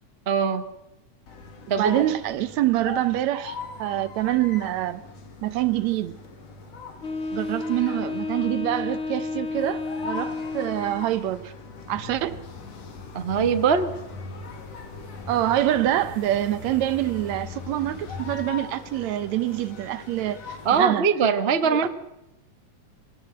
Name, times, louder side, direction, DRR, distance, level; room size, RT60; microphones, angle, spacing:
voice 1, 0.3-0.7 1.7-2.0 13.1-13.9 20.6-21.9, right 6 dB, 90° right, 0.5 m, -22 dB
sound 1, 1.3-20.9, left 4 dB, 55° left, 3.4 m, -42 dB
voice 2, 1.8-5.0 5.4-6.2 7.3-11.5 11.9-12.4 15.3-21.1 21.6-21.9, right 14 dB, 70° right, 2.0 m, -26 dB
Wind instrument woodwind instrument, 7.0-11.1, left 3 dB, 40° left, 1.0 m, -31 dB
sound 2, 11.9-18.5, left 3 dB, 90° left, 5.3 m, -40 dB
23.0 x 17.5 x 7.8 m
omnidirectional pair, 3.6 m